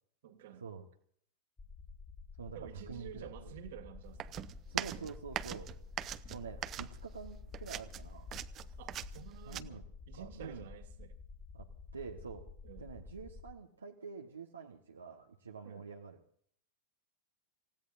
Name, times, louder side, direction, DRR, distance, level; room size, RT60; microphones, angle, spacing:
voice 1, 0.2-0.6 2.5-4.4 8.8-11.2 12.6-12.9 15.6-15.9, right 10 dB, 60° right, 7 dB, 2.1 m, -51 dB
sound 1, 1.6-13.5, left 4 dB, 15° left, 1.7 m, -50 dB
voice 2, 2.4-3.3 4.7-5.7 6.0-8.3 9.5-9.8 10.1-10.7 11.5-11.7 11.9-12.4 12.8-16.2, right 5 dB, 80° right, 1 dB, 1.2 m, -47 dB
sound 2, 4.2-7.3 7.5-9.6, right 11 dB, 35° right, 0.7 m, -41 dB
28.0 x 16.0 x 2.6 m, 0.62 s
figure-of-eight pair, 95°, 0 cm